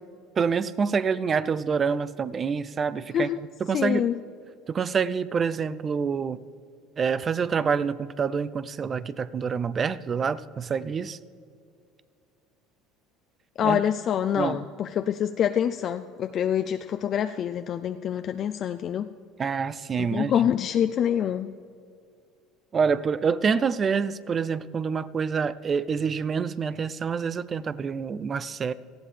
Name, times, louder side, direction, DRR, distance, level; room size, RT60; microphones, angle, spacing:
voice 1, 0.4-3.3 3.6-4.1 4.7-6.4 7.0-11.2 13.6-13.8 14.4-14.7 19.4-20.3 22.7-28.7, right 6 dB, 30° right, 17 dB, 0.4 m, -27 dB
voice 2, 3.7-4.1 13.6-19.1 20.0-21.5, left 9 dB, 45° left, 8 dB, 0.4 m, -26 dB
18.5 x 14.5 x 3.3 m, 2.3 s
supercardioid pair, 105°, 0 cm